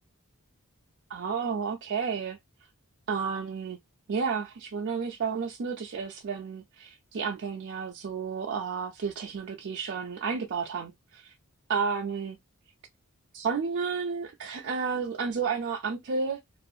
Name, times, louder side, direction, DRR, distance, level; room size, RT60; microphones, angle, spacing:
voice 1, 1.1-2.4 3.1-3.8 4.1-11.4 11.7-12.4 13.3-16.4, right 5 dB, 50° right, 0.4 m, -31 dB
2.5 x 2.4 x 2.6 m
head